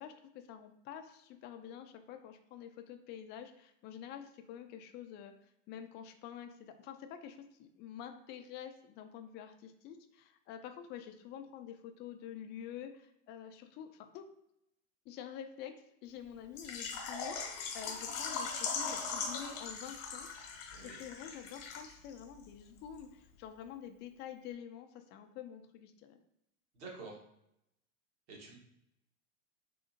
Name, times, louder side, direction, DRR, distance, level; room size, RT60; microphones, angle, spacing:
voice 1, 0.0-5.3 5.7-14.3 15.1-15.7 16.0-26.2, left 9 dB, 30° left, 6 dB, 0.3 m, -48 dB
Water / Liquid, 16.6-22.2 22.4-22.5 23.0-23.1, left 5 dB, 50° left, 0.9 m, -40 dB
voice 2, 26.7-27.2 28.3-28.6, right 3 dB, 60° right, -2 dB, 1.4 m, -48 dB
3.5 x 2.7 x 2.7 m, 0.80 s
hypercardioid pair, 90°, 38 cm